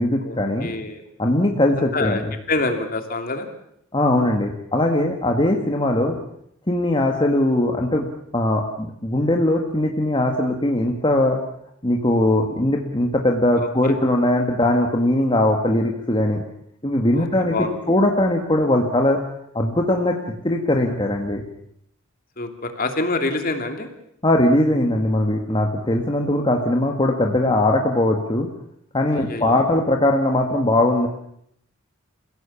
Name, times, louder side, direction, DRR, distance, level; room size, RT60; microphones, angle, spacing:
voice 1, 0.0-0.7 1.2-2.3 3.9-6.2 6.7-8.1 8.3-11.4 11.8-16.4 16.8-17.6 17.9-19.2 19.5-20.2 20.4-21.4 24.2-28.5 28.9-31.1, left 1 dB, 25° left, 1 dB, 1.9 m, -20 dB
voice 2, 0.6-1.0 1.7-2.2 2.5-3.5 13.6-14.0 17.1-17.8 22.4-23.9 29.1-29.7, left 2 dB, 45° left, 5 dB, 2.9 m, -26 dB
29.0 x 17.0 x 7.2 m, 0.73 s
head